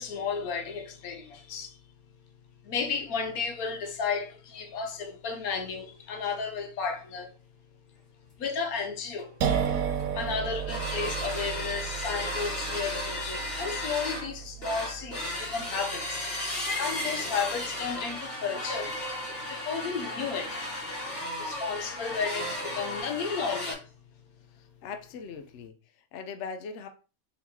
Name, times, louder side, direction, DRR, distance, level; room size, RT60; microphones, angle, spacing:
voice 1, 0.0-1.8 2.6-7.3 8.4-16.2 16.8-18.9 19.4-20.7 21.4-23.9, left 5 dB, 90° left, 1.3 m, -33 dB
sound 1, 9.2-9.3 9.5-9.7 10.0-10.2 10.6-23.7, left 1 dB, 45° left, 1.8 m, -35 dB
sound 2, 9.4-17.0, right 8 dB, 75° right, 1.1 m, -34 dB
voice 2, 24.5-26.9, left 5 dB, 65° left, 0.8 m, -41 dB
4.2 x 3.7 x 2.8 m
omnidirectional pair, 1.5 m